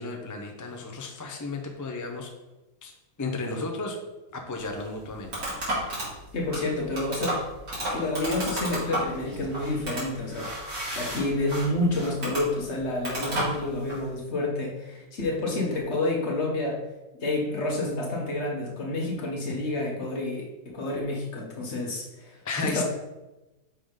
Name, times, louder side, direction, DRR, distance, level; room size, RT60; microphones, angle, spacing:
voice 1, 0.0-2.3 2.8-2.9 3.2-4.0 4.3-6.0 22.4-22.8, left 3 dB, 30° left, 2 dB, 0.3 m, -34 dB
sound 1, 4.5-14.0, right 1 dB, 70° right, 2.9 m, -33 dB
voice 2, 6.3-7.4 7.9-10.5 10.9-16.8 17.2-20.5 20.7-22.1 22.6-22.8, left 2 dB, 45° left, -1 dB, 1.4 m, -29 dB
5.8 x 3.8 x 5.1 m, 1.1 s
omnidirectional pair, 1.7 m